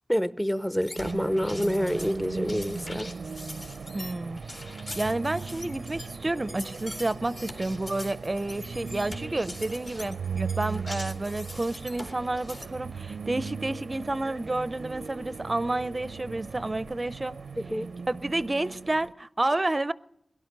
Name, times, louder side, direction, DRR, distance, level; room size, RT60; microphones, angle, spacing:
voice 1, 0.1-3.1 17.6-17.9, equal, 10° left, 0.6 m, -27 dB
sound 1, 0.8-12.7, left 1 dB, 50° left, 2.8 m, -43 dB
sound 2, 1.0-19.1, right 5 dB, 85° right, 0.5 m, -38 dB
voice 2, 3.9-4.4 4.9-17.4 18.1-19.9, right 2 dB, 35° right, 0.5 m, -30 dB
17.5 x 11.5 x 6.6 m
cardioid pair, 50°, 0 cm